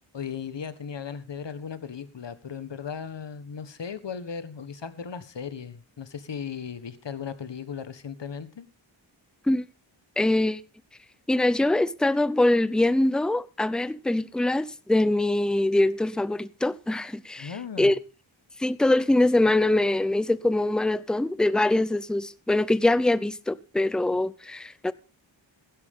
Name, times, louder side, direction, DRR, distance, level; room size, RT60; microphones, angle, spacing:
voice 1, 0.1-8.7 17.4-17.9, left 7 dB, 65° left, 1.5 m, -37 dB
voice 2, 10.2-10.6 11.3-18.0 18.6-24.9, left 2 dB, ahead, 0.5 m, -23 dB
16.0 x 12.0 x 3.7 m
wide cardioid pair, 95°, 46 cm